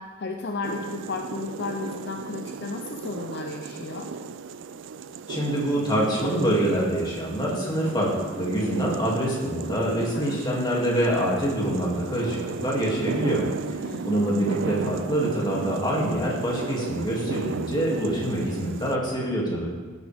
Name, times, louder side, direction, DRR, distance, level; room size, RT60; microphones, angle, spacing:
voice 1, 0.0-4.1 10.0-10.5 13.8-14.4, left 3 dB, 50° left, 3 dB, 0.6 m, -34 dB
sound 1, 0.6-19.0, right 5 dB, 60° right, 0.4 m, -35 dB
voice 2, 5.3-13.8 14.0-19.7, right 1 dB, 20° left, -4 dB, 2.5 m, -25 dB
16.0 x 9.2 x 3.5 m, 1.4 s
head